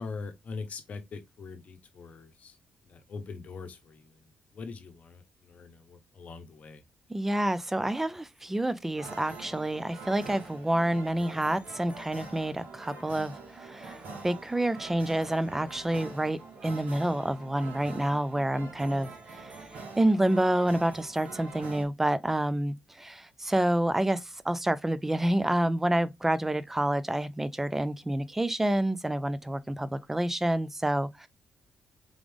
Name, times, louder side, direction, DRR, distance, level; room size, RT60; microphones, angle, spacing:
voice 1, 0.0-2.6 2.8-6.8, left 4 dB, 50° left, 0.8 m, -42 dB
voice 2, 7.1-19.7 20.0-31.3, right 1 dB, 10° right, 0.4 m, -28 dB
sound 1, 9.0-21.8, right 3 dB, 70° right, 1.6 m, -45 dB
3.7 x 3.5 x 3.5 m
cardioid pair, 115°, 3 cm